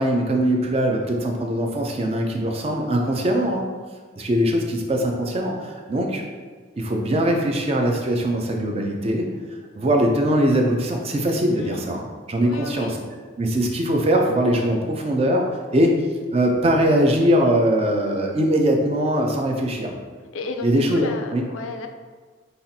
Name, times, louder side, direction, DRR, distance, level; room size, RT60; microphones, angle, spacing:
voice 1, 0.0-3.7 4.2-6.2 6.8-9.3 9.7-13.0 13.4-15.5 15.7-16.0 16.3-19.9 20.6-21.4, equal, 30° right, 2 dB, 0.4 m, -21 dB
voice 2, 11.6-11.9 12.4-13.0 20.3-21.9, left 3 dB, 85° left, 5 dB, 0.4 m, -34 dB
5.5 x 2.5 x 2.7 m, 1.5 s
head